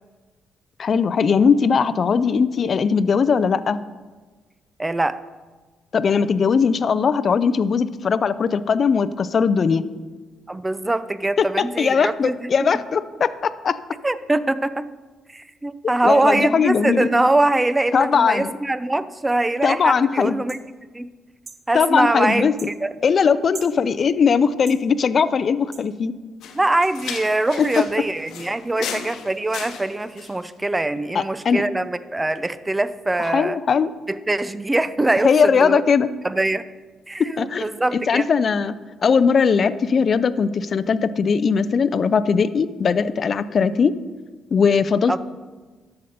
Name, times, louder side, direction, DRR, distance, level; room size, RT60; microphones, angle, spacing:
voice 1, 0.8-3.8 5.9-9.8 11.4-11.5 11.8-13.8 16.0-17.1 17.9-18.5 19.6-20.4 21.7-22.5 23.0-26.1 31.1-31.6 33.3-33.9 35.2-36.1 37.4-37.6 37.9-38.7 39.0-44.0 44.5-45.2, left 6 dB, 50° left, 14 dB, 0.4 m, -19 dB
voice 2, 4.8-5.2 10.5-12.5 14.0-14.9 15.3-20.6 20.9-21.1 21.7-22.9 26.5-33.6 34.1-35.8 36.2-36.6 37.1-38.3 45.1-45.2, right 2 dB, 15° right, 15 dB, 0.4 m, -23 dB
sound 1, 20.5-20.6 21.4-21.6 22.6-22.7 23.5-23.8 24.7-24.8 25.7-25.9 26.8-26.9, right 5 dB, 40° right, 0.7 m, -39 dB
sound 2, 26.4-30.4, left 7 dB, 80° left, 0.9 m, -35 dB
11.5 x 6.8 x 4.2 m, 1.3 s
cardioid pair, 90°, 0 cm